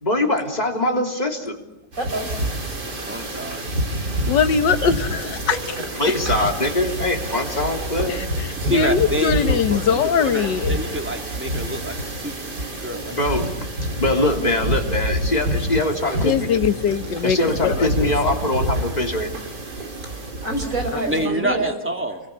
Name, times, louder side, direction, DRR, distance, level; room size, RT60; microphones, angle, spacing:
voice 1, 0.0-1.6 6.0-8.2 13.1-13.5 14.0-16.5 17.2-19.3, left 1 dB, 25° left, 2 dB, 3.5 m, -22 dB
sound 1, 1.9-21.3, right 1 dB, 70° right, 4.4 m, -28 dB
voice 2, 2.0-2.3 4.8-4.9 5.5-5.6 7.3-7.6 16.2-16.3 16.9-18.0 20.4-21.7, right 2 dB, 50° right, 5 dB, 5.5 m, -29 dB
sound 2, 2.4-21.7, right 3 dB, 25° right, 2.2 m, -40 dB
voice 3, 2.8-4.0 8.6-9.9 10.2-12.5 12.8-13.1 21.1-22.2, right 1 dB, 5° right, 4 dB, 2.6 m, -27 dB
voice 4, 4.3-5.6 8.1-10.7 16.2-17.9 18.3-18.7, left 7 dB, 85° left, 10 dB, 1.9 m, -21 dB
28.5 x 23.0 x 8.6 m, 0.93 s
omnidirectional pair, 1.9 m